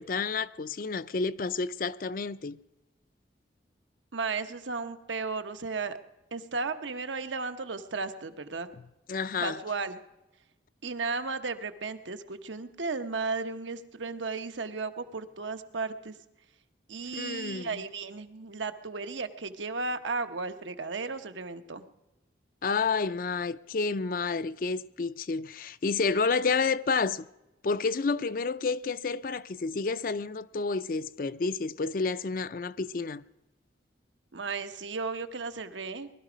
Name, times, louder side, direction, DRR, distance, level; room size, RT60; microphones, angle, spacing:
voice 1, 0.0-2.6 9.1-9.6 17.1-17.8 22.6-27.3 27.6-33.2, left 4 dB, 45° left, 0.4 m, -30 dB
voice 2, 4.1-6.0 6.3-8.7 9.4-10.0 10.8-16.2 16.9-21.8 34.3-36.1, right 4 dB, 85° right, 1.0 m, -34 dB
20.0 x 12.5 x 5.0 m
head